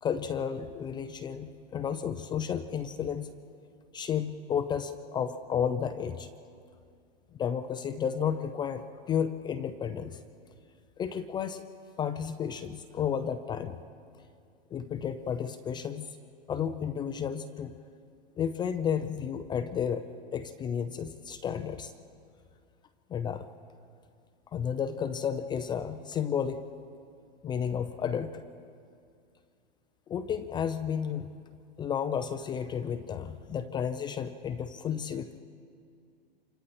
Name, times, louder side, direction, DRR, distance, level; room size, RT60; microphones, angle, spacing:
voice 1, 0.0-3.3 3.9-6.3 7.4-10.2 11.0-11.6 12.0-13.8 14.7-16.1 16.5-17.7 18.4-20.0 20.3-21.9 23.1-23.5 24.5-26.7 27.4-28.4 30.1-31.3 31.8-35.4, left 8 dB, 15° left, 9 dB, 0.5 m, -32 dB
28.0 x 25.0 x 4.3 m, 2.4 s
hypercardioid pair, 140°, 31 cm